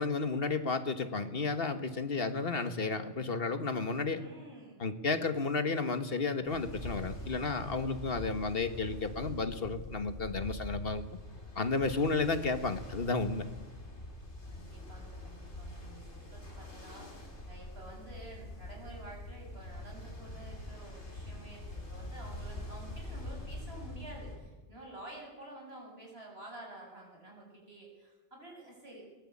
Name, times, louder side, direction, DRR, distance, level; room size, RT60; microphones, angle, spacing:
voice 1, 0.0-4.2 4.8-11.0 11.5-13.4, left 3 dB, 55° left, 10 dB, 1.7 m, -32 dB
voice 2, 4.1-4.8 5.8-6.0 14.5-29.1, right 2 dB, 65° right, 0 dB, 7.6 m, -50 dB
Ocean, 6.5-24.4, left 1 dB, 80° left, 4.4 m, -44 dB
22.0 x 20.0 x 8.6 m, 1.2 s
omnidirectional pair, 1.1 m